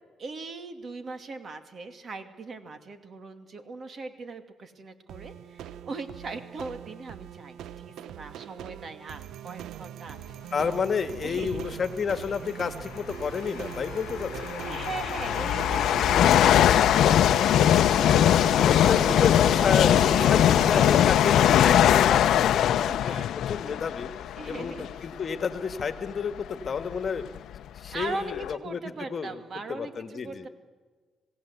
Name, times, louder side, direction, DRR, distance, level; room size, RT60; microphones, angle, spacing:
voice 1, 0.2-10.4 11.2-11.8 14.6-19.0 19.3-19.8 20.1-20.4 22.7-23.3 23.6-23.8 24.4-25.1 27.9-30.5, right 3 dB, 45° right, 8 dB, 2.6 m, -40 dB
sound 1, 5.1-21.1, right 9 dB, 80° right, 0.7 m, -40 dB
voice 2, 10.5-14.6 18.6-23.2 23.5-24.1 24.5-27.2 27.8-28.8 29.1-29.3 29.7-30.5, left 6 dB, 45° left, 9 dB, 1.7 m, -30 dB
sound 2, 11.4-11.7 12.8-12.9 13.7-25.1 25.7-25.8 26.6-26.7 26.9-28.5, left 11 dB, 75° left, 0.7 m, -21 dB
27.5 x 17.5 x 8.3 m, 1.4 s
cardioid pair, 90°, 0 cm